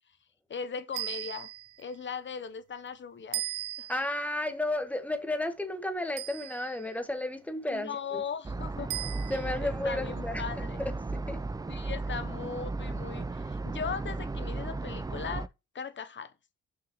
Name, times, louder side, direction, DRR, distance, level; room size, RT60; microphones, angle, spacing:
voice 1, 0.5-1.5 1.8-3.4 3.8-3.9 7.7-8.9 9.3-10.8 11.7-15.5 15.7-16.3, left 6 dB, 35° left, 0.9 m, -38 dB
sound 1, 0.9-1.8 3.3-4.2 6.2-6.9 8.9-9.6, right 14 dB, 75° right, 0.6 m, -37 dB
voice 2, 3.9-8.2 9.3-10.4 10.8-11.4, left 1 dB, 5° left, 1.4 m, -33 dB
sound 2, 8.4-15.5, right 3 dB, 10° right, 0.4 m, -35 dB
6.0 x 5.6 x 3.1 m
supercardioid pair, 65°, 31 cm